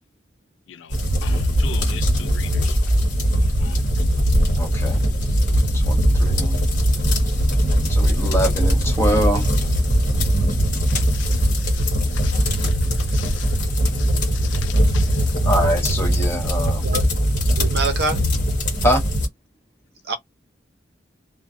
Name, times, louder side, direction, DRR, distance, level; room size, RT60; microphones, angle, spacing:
sound 1, 0.9-19.3, equal, 45° left, 1.0 m, -20 dB
voice 1, 1.2-2.8 3.6-3.8 10.9-13.5 14.0-15.2, left 10 dB, 80° left, 0.3 m, -40 dB
voice 2, 4.5-5.0 5.7-6.6 7.9-9.4 15.4-16.9 18.8-19.0, equal, 15° left, 1.0 m, -24 dB
voice 3, 17.6-18.2 20.1-20.2, right 3 dB, 60° right, 0.7 m, -24 dB
2.4 x 2.1 x 2.4 m
head